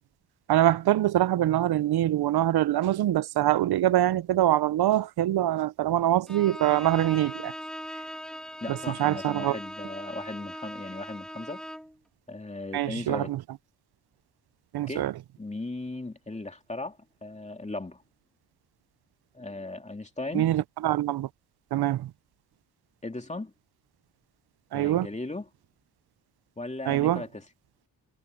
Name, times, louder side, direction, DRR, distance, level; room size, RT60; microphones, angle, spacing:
voice 1, 0.5-7.5 8.7-9.6 12.7-13.4 14.7-15.1 20.3-21.3 21.7-22.1 24.7-25.1 26.9-27.2, right 13 dB, 90° right, 0.5 m, -24 dB
Bowed string instrument, 6.3-12.0, equal, ahead, 2.0 m, -40 dB
voice 2, 8.6-11.6 12.3-13.3 14.9-15.1 15.4-18.0 19.3-20.5 23.0-23.5 24.7-25.5 26.6-27.4, left 2 dB, 20° left, 2.7 m, -37 dB
wide cardioid pair, 100°, 37 cm